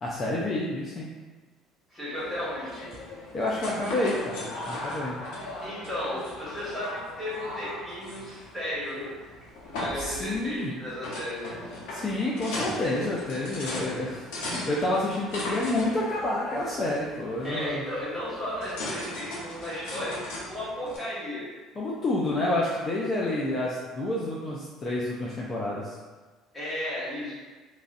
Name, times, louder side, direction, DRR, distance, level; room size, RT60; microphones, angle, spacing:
voice 1, 0.0-1.1 3.3-5.2 9.9-10.7 11.9-17.8 21.8-26.0, left 1 dB, 35° left, -5 dB, 0.4 m, -29 dB
voice 2, 1.9-2.9 5.6-9.1 9.6-11.5 17.4-21.4 26.5-27.4, left 1 dB, ahead, -10 dB, 1.5 m, -34 dB
sound 1, 2.2-21.0, left 1 dB, 80° left, 0.8 m, -38 dB
3.0 x 2.5 x 2.6 m, 1.3 s
cardioid pair, 120°, 0 cm